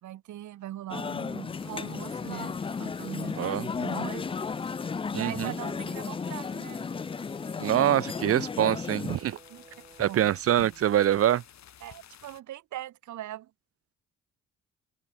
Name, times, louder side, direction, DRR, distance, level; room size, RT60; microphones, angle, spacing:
voice 1, 0.0-4.4 5.1-6.9 7.7-7.8 9.5-9.6 10.1-10.3 11.8-13.5, right 13 dB, 70° right, 1.4 m, -41 dB
sound 1, 0.9-9.2, left 5 dB, 20° left, 0.4 m, -34 dB
sound 2, 1.5-12.4, left 10 dB, 65° left, 6.8 m, -53 dB
voice 2, 3.4-3.7 5.1-5.5 7.6-9.4 10.0-11.4, right 11 dB, 50° right, 0.6 m, -25 dB
Brass instrument, 6.2-10.5, right 3 dB, 20° right, 2.8 m, -55 dB
cardioid pair, 90°, 30 cm